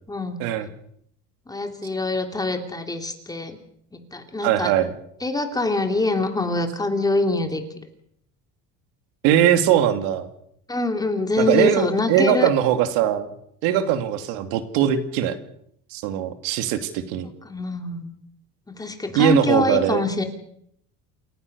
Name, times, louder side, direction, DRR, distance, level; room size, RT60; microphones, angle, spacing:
voice 1, 0.1-0.4 1.5-3.6 3.9-4.7 5.2-7.6 10.7-12.5 17.4-18.1 18.7-20.2, left 2 dB, 10° left, 5 dB, 3.0 m, -24 dB
voice 2, 4.4-4.9 9.2-10.3 11.4-13.3 13.6-15.4 15.9-17.3 19.1-20.0, right 10 dB, 85° right, 9 dB, 2.6 m, -20 dB
28.5 x 15.5 x 6.8 m, 0.71 s
cardioid pair, 130°, 34 cm